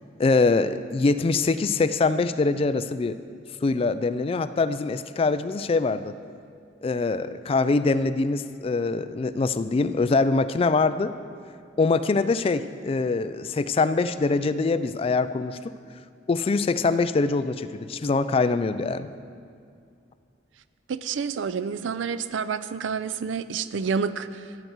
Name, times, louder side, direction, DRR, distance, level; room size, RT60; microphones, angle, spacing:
voice 1, 0.2-3.2 3.6-6.1 6.8-11.1 11.8-15.7 16.3-19.1, left 3 dB, 30° left, 12 dB, 0.3 m, -23 dB
voice 2, 20.9-24.4, right 6 dB, 85° right, 14 dB, 0.4 m, -29 dB
14.5 x 7.9 x 4.6 m, 2.3 s
head